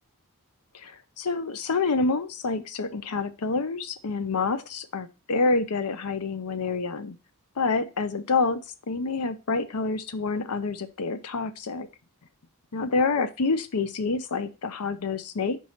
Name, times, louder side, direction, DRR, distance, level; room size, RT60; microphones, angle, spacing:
voice 1, 0.7-7.2 7.6-8.6 8.9-11.9 12.7-15.6, left 4 dB, 80° left, 12 dB, 0.7 m, -27 dB
5.4 x 4.7 x 5.6 m, 0.31 s
head